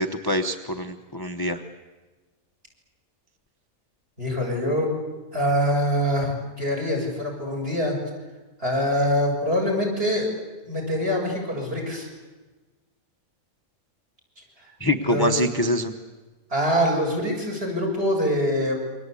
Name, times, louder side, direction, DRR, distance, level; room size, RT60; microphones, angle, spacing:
voice 1, 0.0-1.6 14.8-15.9, left 1 dB, 20° left, 6 dB, 0.9 m, -25 dB
voice 2, 4.2-4.9 5.3-8.0 8.6-10.3 10.6-12.1 14.4-14.7 15.0-15.4 16.5-18.8, equal, 45° right, 0 dB, 6.9 m, -24 dB
28.0 x 24.5 x 8.4 m, 1.2 s
omnidirectional pair, 1.5 m